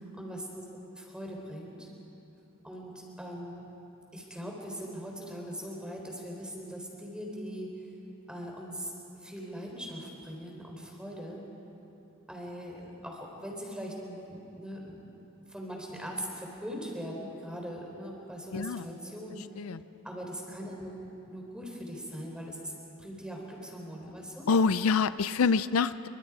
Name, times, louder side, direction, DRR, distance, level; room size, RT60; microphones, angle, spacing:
voice 1, 0.1-0.6 1.0-1.9 2.6-3.7 4.1-7.7 8.3-8.9 9.2-11.4 12.3-15.0 15.5-19.5 20.0-20.9 21.2-22.7 23.0-24.5, equal, 5° right, -1 dB, 3.8 m, -41 dB
voice 2, 18.5-18.9 19.6-19.8 24.5-26.1, left 5 dB, 80° left, 14 dB, 0.5 m, -26 dB
27.0 x 24.5 x 4.9 m, 2.9 s
head